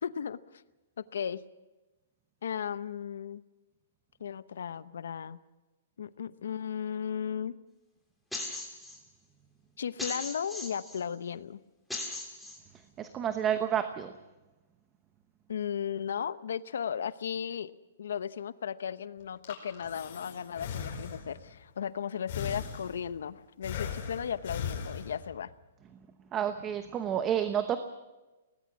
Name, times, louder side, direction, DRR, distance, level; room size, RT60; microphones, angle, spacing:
voice 1, 0.0-0.6 1.0-1.4 2.4-3.4 4.2-5.4 6.0-7.6 9.8-11.6 15.5-17.7 18.0-25.5, left 8 dB, 80° left, 15 dB, 0.8 m, -35 dB
sound 1, 8.3-9.0 10.0-11.0 11.9-12.6, left 2 dB, ahead, 3.2 m, -38 dB
voice 2, 13.0-14.1 26.3-27.8, right 9 dB, 20° right, 9 dB, 0.9 m, -30 dB
Breathing, 19.2-21.5 22.3-23.2 23.6-25.4, left 7 dB, 45° left, 5.2 m, -38 dB
24.0 x 18.5 x 6.2 m, 1.1 s
hypercardioid pair, 155°, 0 cm